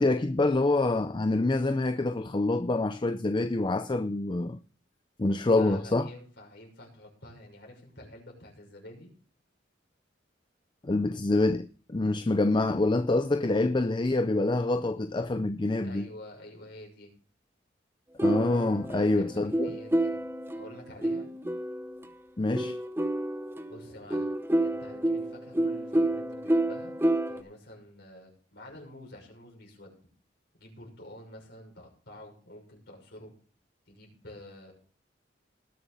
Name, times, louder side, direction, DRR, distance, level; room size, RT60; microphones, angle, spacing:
voice 1, 0.0-4.6 5.2-6.1 10.8-16.0 18.2-19.7 22.4-22.8, left 2 dB, 25° left, 0.5 m, -26 dB
voice 2, 5.4-9.1 15.8-17.1 18.7-20.2 20.5-21.3 23.7-26.9 27.3-30.0 30.5-33.3 33.9-34.7, left 1 dB, 65° left, 6.1 m, -49 dB
sound 1, 18.2-22.0 22.5-27.4, right 1 dB, 15° right, 0.9 m, -29 dB
19.5 x 7.0 x 4.2 m
head